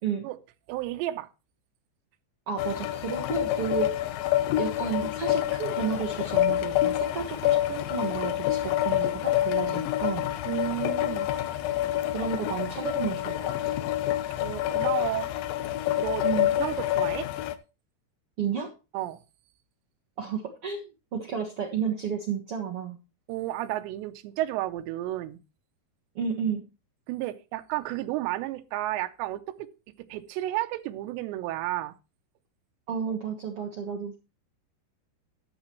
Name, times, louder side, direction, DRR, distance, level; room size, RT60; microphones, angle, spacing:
voice 1, 0.7-1.3 10.5-11.3 14.4-15.3 16.0-16.3 16.6-17.3 18.9-19.2 23.3-25.4 27.1-29.7 30.0-32.0, right 15 dB, 85° right, 3.0 m, -32 dB
voice 2, 2.5-3.9 4.5-10.3 12.1-13.7 16.2-16.5 18.4-18.7 20.2-23.0 26.1-26.6 32.9-34.2, right 7 dB, 70° right, 1.3 m, -32 dB
sound 1, 2.6-17.6, left 13 dB, 75° left, 2.2 m, -27 dB
13.0 x 10.5 x 3.0 m
omnidirectional pair, 5.0 m